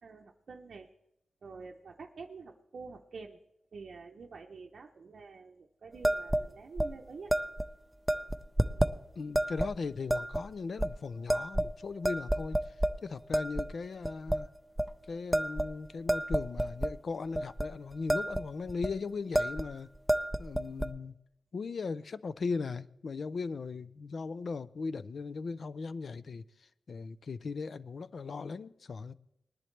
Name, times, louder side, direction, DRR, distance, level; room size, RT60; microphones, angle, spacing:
voice 1, 0.0-0.9 1.4-3.4 3.7-7.3, right 4 dB, 60° right, 0.7 m, -47 dB
sound 1, 6.0-6.4 6.8-6.9 7.3-7.7 8.1-8.9 9.3-9.7 10.1-10.4 10.8-10.9 11.3-11.8 12.0-12.9 13.3-13.7 14.0-14.4 14.8-14.9 15.3-16.9 17.3-17.7 17.9-18.4 18.7-18.9 19.3-19.7 20.0-20.9, right 1 dB, 5° right, 0.4 m, -30 dB
voice 2, 9.2-12.7 13.0-14.5 15.1-20.0 20.4-21.2 21.5-29.1, left 4 dB, 55° left, 0.4 m, -38 dB
20.0 x 10.5 x 3.3 m
wide cardioid pair, 125°, 0 cm